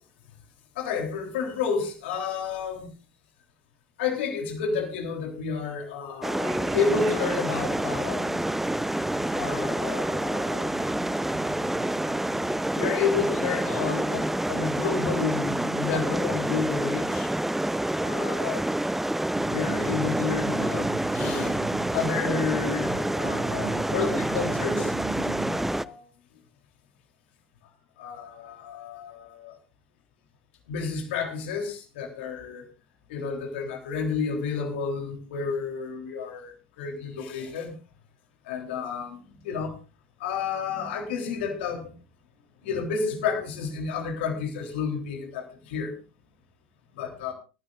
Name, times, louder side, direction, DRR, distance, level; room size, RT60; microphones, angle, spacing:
voice 1, 0.8-2.9 4.0-8.4 9.3-10.7 12.8-17.3 18.0-18.6 19.5-21.6 21.9-26.0 28.0-29.5 30.7-32.6 33.1-37.7 38.5-39.2 39.4-39.7 40.2-41.9 42.6-45.9 47.0-47.3, left 5 dB, 65° left, 3 dB, 3.5 m, -31 dB
sound 1, 6.2-25.8, right 1 dB, 5° right, 0.5 m, -28 dB
sound 2, 6.4-12.6, right 2 dB, 80° right, 3.1 m, -42 dB
sound 3, 19.3-25.7, right 5 dB, 45° right, 2.8 m, -37 dB
24.5 x 10.0 x 2.5 m, 0.33 s
figure-of-eight pair, 85°, 7 cm